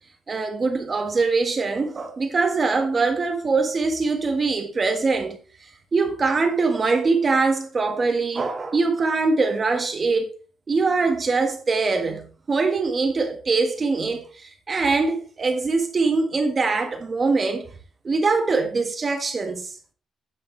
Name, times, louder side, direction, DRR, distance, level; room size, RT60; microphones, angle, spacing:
voice 1, 0.3-5.4 5.9-10.3 10.7-17.7 18.0-19.7, right 4 dB, 35° right, 1.4 m, -23 dB
9.3 x 8.2 x 3.2 m
cardioid pair, 90°, 0 cm